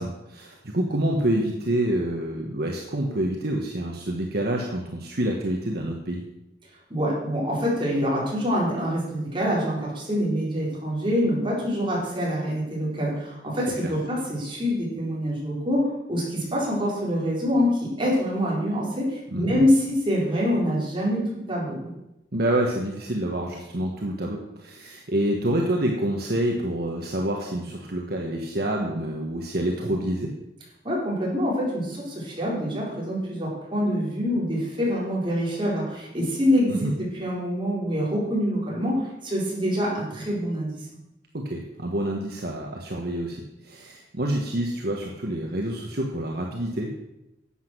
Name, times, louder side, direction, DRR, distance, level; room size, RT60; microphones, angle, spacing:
voice 1, 0.0-6.2 13.8-13.9 19.3-19.6 22.3-30.3 36.7-36.9 41.3-46.9, right 1 dB, 60° right, 0 dB, 1.4 m, -27 dB
voice 2, 6.9-21.9 30.8-40.8, equal, 30° right, -5 dB, 4.4 m, -25 dB
11.5 x 8.1 x 6.1 m, 0.90 s
head